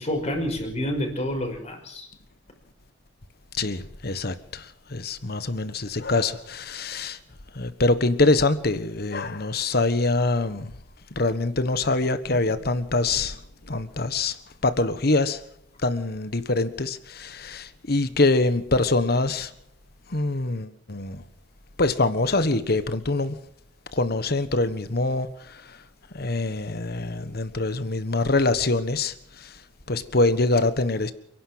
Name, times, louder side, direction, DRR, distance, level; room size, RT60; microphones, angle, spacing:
voice 1, 0.0-2.1, left 1 dB, 35° left, 5.8 m, -28 dB
voice 2, 3.6-7.2 7.5-10.7 11.1-13.4 13.7-14.4 14.6-15.4 15.8-19.5 20.1-21.2 21.8-23.4 23.9-25.8 26.1-29.5 29.9-31.1, left 2 dB, 55° left, 1.4 m, -24 dB
29.0 x 11.0 x 7.9 m
head